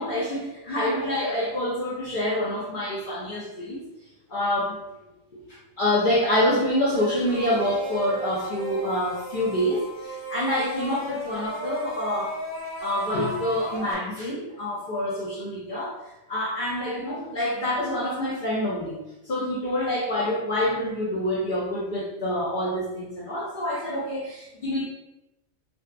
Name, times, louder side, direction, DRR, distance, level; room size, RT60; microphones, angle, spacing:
voice 1, 0.0-3.8 4.3-4.8 5.8-12.4 12.8-16.0 16.3-19.0 19.2-24.8, left 1 dB, 60° left, -7 dB, 0.5 m, -26 dB
sound 1, 6.9-13.9, right 1 dB, 60° right, 0.4 m, -35 dB
2.7 x 2.2 x 2.3 m, 0.94 s
omnidirectional pair, 1.4 m